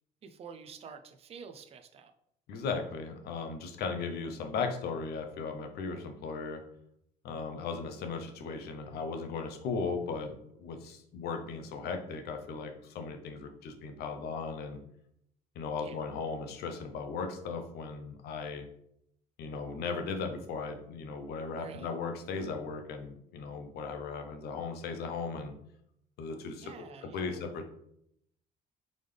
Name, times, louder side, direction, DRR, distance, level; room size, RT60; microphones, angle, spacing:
voice 1, 0.2-2.1 15.8-16.0 21.6-21.9 26.6-27.4, right 6 dB, 35° right, 7 dB, 0.5 m, -48 dB
voice 2, 2.5-6.6 7.2-10.3 10.6-14.8 15.6-18.6 19.4-25.5 26.2-26.7 27.1-27.7, left 4 dB, 70° left, 5 dB, 0.7 m, -37 dB
3.9 x 3.4 x 3.3 m, 0.73 s
cardioid pair, 110°, 17 cm